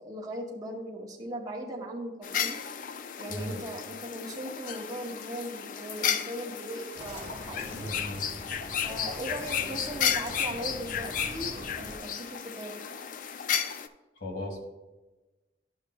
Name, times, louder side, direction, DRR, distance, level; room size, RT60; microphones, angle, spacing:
voice 1, 0.0-2.6 3.2-7.9 8.8-12.7, right 1 dB, 20° right, -3 dB, 0.8 m, -39 dB
sound 1, 2.2-13.9, left 8 dB, 45° left, 0.3 m, -33 dB
voice 2, 3.3-3.6 7.7-8.3 14.2-14.6, left 1 dB, 70° left, 0 dB, 1.8 m, -37 dB
sound 2, 7.0-12.0, equal, 15° left, 1.0 m, -44 dB
11.0 x 6.6 x 2.3 m, 1.1 s
head